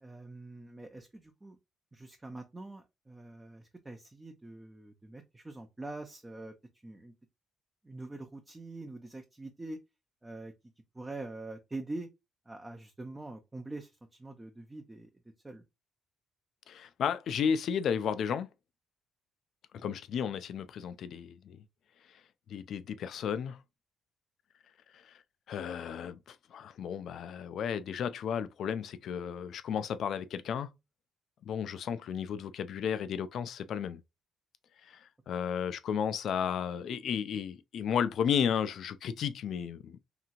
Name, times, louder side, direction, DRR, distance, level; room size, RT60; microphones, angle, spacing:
voice 1, 0.0-1.6 1.9-6.5 6.8-7.1 7.8-9.8 10.2-10.5 10.9-12.1 12.5-15.1 15.4-15.6 19.8-19.9, right 2 dB, 15° right, 0.5 m, -44 dB
voice 2, 16.7-18.5 19.7-21.6 22.5-23.6 24.9-25.1 25.5-30.7 31.4-34.0 34.8-40.0, left 8 dB, 70° left, 0.3 m, -33 dB
2.9 x 2.7 x 2.4 m
cardioid pair, 90°, 0 cm